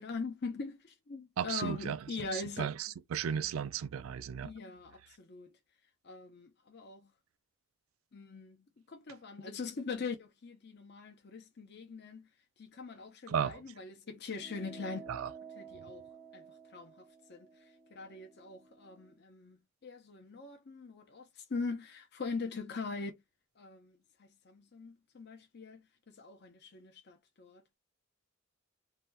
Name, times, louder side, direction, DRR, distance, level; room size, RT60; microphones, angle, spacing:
voice 1, 0.0-2.7 3.3-3.6 4.4-5.5 6.0-7.1 8.1-8.6 8.9-12.3 12.6-15.1 15.6-16.1 16.3-16.4 16.7-17.5 17.9-19.6 19.8-21.2 21.5-23.2 23.6-23.9 24.2-27.6, left 4 dB, 55° left, 0.6 m, -42 dB
voice 2, 1.4-2.0 2.3-4.5 13.3-13.6 15.1-15.3, right 8 dB, 90° right, 0.3 m, -35 dB
sound 1, 14.4-19.2, right 5 dB, ahead, 0.6 m, -52 dB
2.7 x 2.3 x 3.3 m
head